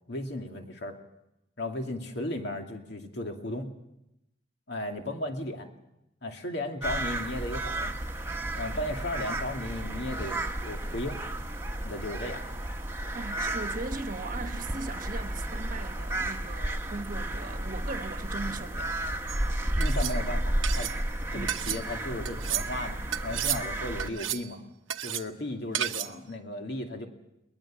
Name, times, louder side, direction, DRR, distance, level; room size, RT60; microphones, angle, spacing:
voice 1, 0.1-1.0 1.6-3.7 4.7-5.7 6.2-7.9 8.5-11.2 11.8-12.5 19.8-20.9 21.3-24.7 25.0-27.1, left 1 dB, 60° left, 2.6 m, -35 dB
sound 1, 6.8-24.1, right 1 dB, 15° right, 1.3 m, -32 dB
voice 2, 13.1-19.2 21.3-21.6, right 3 dB, 45° right, 1.3 m, -39 dB
sound 2, 19.3-19.4 19.8-20.2 20.6-21.0 21.5-21.8 22.2-22.7 23.1-23.6 24.0-24.5 24.9-25.2 25.7-26.1, right 11 dB, 85° right, 1.0 m, -32 dB
22.0 x 19.5 x 7.5 m
head